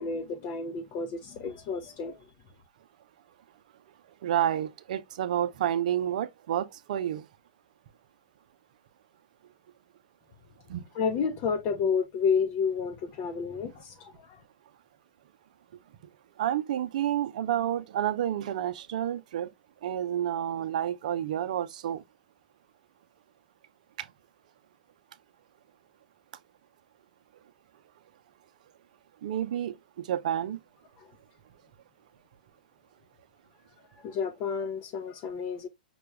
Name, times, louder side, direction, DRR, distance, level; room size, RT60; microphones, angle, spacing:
voice 1, 0.0-2.2 10.9-14.4 34.0-35.7, left 6 dB, 35° left, 0.7 m, -30 dB
voice 2, 4.2-7.3 10.7-10.8 16.4-19.5 19.8-22.0 24.0-24.1 29.2-30.6, right 10 dB, 60° right, 0.6 m, -30 dB
5.7 x 2.3 x 3.3 m
hypercardioid pair, 125°, 5 cm